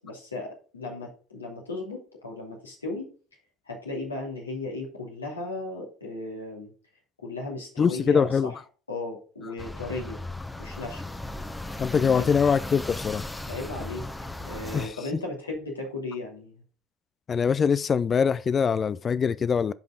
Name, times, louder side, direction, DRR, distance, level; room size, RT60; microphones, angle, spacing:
voice 1, 0.0-3.1 3.7-6.7 7.2-8.6 8.9-10.2 10.6-11.0 12.1-12.3 13.5-14.1 14.4-16.6, left 2 dB, 85° left, 2.8 m, -36 dB
voice 2, 7.8-8.5 11.8-13.3 14.7-14.9 17.3-19.7, left 6 dB, 30° left, 0.4 m, -23 dB
sound 1, 9.6-14.9, left 2 dB, 10° left, 1.0 m, -36 dB
10.5 x 5.3 x 3.8 m
figure-of-eight pair, 70°, 0 cm